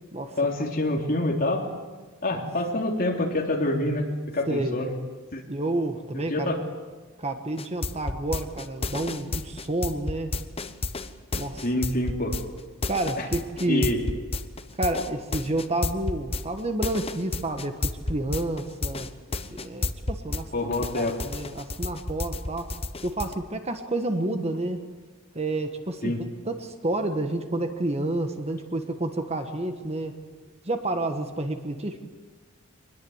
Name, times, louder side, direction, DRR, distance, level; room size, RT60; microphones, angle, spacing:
voice 1, 0.4-1.7 2.2-4.9 5.3-5.4 6.1-6.6 11.6-12.4 13.2-13.3 13.7-14.0 20.5-21.2 26.0-26.2, left 1 dB, 40° left, 1 dB, 3.4 m, -26 dB
voice 2, 4.5-4.8 5.5-6.5 7.2-10.3 11.3-11.6 12.9-13.9 14.8-19.1 19.6-22.7 23.0-24.8 25.3-26.1 26.4-30.1 30.6-32.0, right 2 dB, 30° right, 7 dB, 1.5 m, -29 dB
sound 1, 7.6-20.4 20.7-23.3, left 2 dB, 25° left, 0.9 m, -31 dB
24.5 x 20.5 x 8.1 m, 1.4 s
head